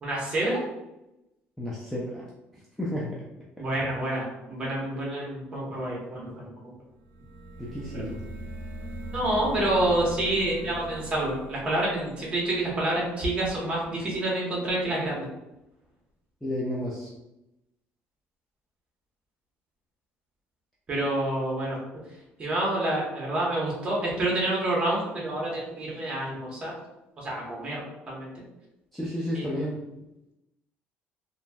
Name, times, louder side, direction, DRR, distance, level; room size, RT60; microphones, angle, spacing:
voice 1, 0.0-0.6 3.6-6.5 7.9-8.1 9.1-15.3 20.9-21.8 22.4-26.7 27.2-27.8 28.1-28.3 29.3-29.6, right 1 dB, 25° right, -4 dB, 0.9 m, -28 dB
voice 2, 1.6-2.3 2.8-3.2 7.6-8.2 16.4-17.1 28.9-29.8, left 1 dB, 5° left, -6 dB, 0.3 m, -31 dB
sound 1, 7.0-13.7, right 1 dB, 65° right, 0.5 m, -41 dB
3.0 x 2.6 x 2.2 m, 0.92 s
cardioid pair, 175°, 5 cm